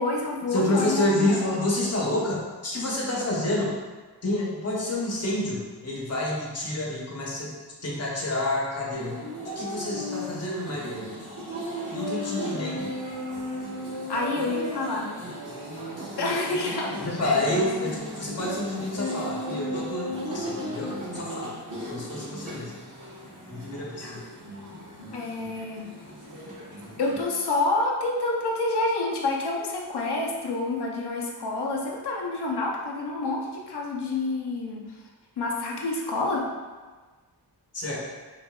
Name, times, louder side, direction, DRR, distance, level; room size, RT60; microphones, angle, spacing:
voice 1, 0.0-1.4 14.1-15.2 16.2-17.0 24.0-24.2 25.1-25.9 27.0-34.8 35.4-36.5, left 2 dB, 75° left, -1 dB, 0.8 m, -28 dB
voice 2, 0.5-3.7 4.2-7.5 7.8-9.2 9.5-11.2 11.9-12.9 17.0-21.5 21.9-22.7 23.5-24.2 37.7-38.0, left 1 dB, 40° left, -4 dB, 1.0 m, -28 dB
sound 1, 8.9-27.2, equal, 50° right, 1.4 m, -35 dB
5.6 x 2.6 x 2.4 m, 1.4 s
wide cardioid pair, 95°, 40 cm